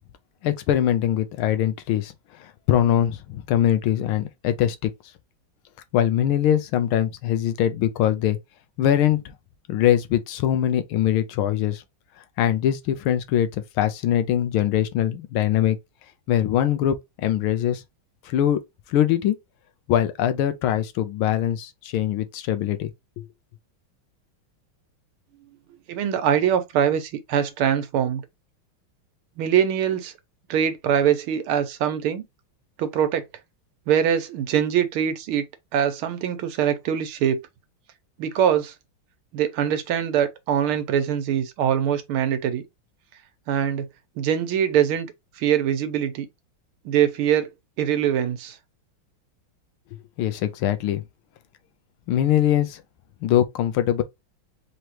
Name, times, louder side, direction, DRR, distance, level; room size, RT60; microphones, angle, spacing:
voice 1, 0.4-2.1 2.4-4.9 5.9-8.4 8.8-9.2 9.7-11.8 12.4-15.8 16.3-17.8 18.2-18.6 18.9-19.4 19.9-23.3 50.2-51.0 52.1-52.8 53.2-54.0, left 11 dB, 85° left, 1.6 m, -22 dB
voice 2, 25.9-28.2 29.4-30.1 30.5-32.2 32.8-33.2 33.9-35.4 35.7-37.4 38.2-38.7 39.3-42.6 43.5-43.9 44.2-45.1 45.4-46.3 46.8-47.5 47.8-48.6, right 9 dB, 90° right, 1.7 m, -23 dB
4.9 x 3.0 x 2.9 m
omnidirectional pair, 2.3 m